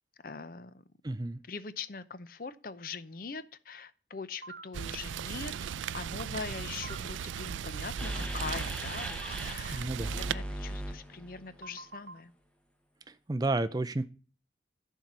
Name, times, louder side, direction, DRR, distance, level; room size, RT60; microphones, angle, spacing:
voice 1, 0.2-0.8 1.5-12.3, left 4 dB, 50° left, 14 dB, 0.6 m, -42 dB
voice 2, 1.0-1.4 9.7-10.1 13.3-14.1, right 2 dB, 20° right, 12 dB, 0.4 m, -31 dB
sound 1, 4.4-4.7 6.8-7.0 9.2-9.4 11.6-12.2, right 3 dB, 50° right, 1.2 m, -45 dB
Rain, 4.7-10.3, right 8 dB, 85° right, 0.4 m, -37 dB
sound 2, 8.0-9.5 10.0-11.6, equal, 5° left, 0.9 m, -38 dB
11.5 x 4.6 x 5.4 m, 0.39 s
head